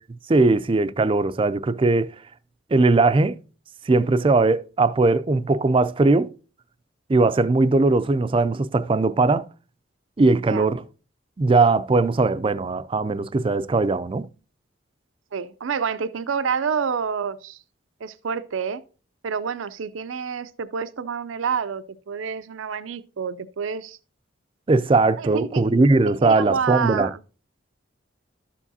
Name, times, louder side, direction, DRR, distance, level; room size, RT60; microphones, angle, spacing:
voice 1, 0.3-2.1 2.7-3.4 3.9-6.3 7.1-9.5 10.2-10.8 11.4-14.3 24.7-27.1, right 3 dB, 25° right, 0.4 m, -19 dB
voice 2, 15.3-17.6 18.0-18.8 19.2-24.0 25.2-25.6 26.1-27.2, right 6 dB, 85° right, 0.5 m, -28 dB
12.5 x 7.2 x 2.7 m
head